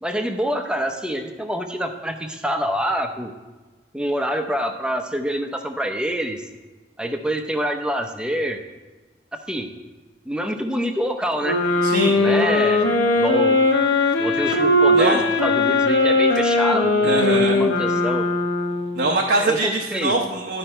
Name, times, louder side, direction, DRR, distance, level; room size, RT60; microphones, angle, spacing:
voice 1, 0.0-3.3 3.9-6.4 7.0-8.6 9.5-9.7 10.2-11.6 12.1-13.6 14.2-18.3 19.4-20.2, equal, 5° right, 5 dB, 0.6 m, -26 dB
sound 1, 11.4-19.1, left 2 dB, 90° left, 1.2 m, -19 dB
voice 2, 11.8-12.1 14.9-15.2 17.0-17.6 18.9-20.6, right 2 dB, 70° right, 0 dB, 0.8 m, -22 dB
12.0 x 5.3 x 4.4 m, 1.2 s
head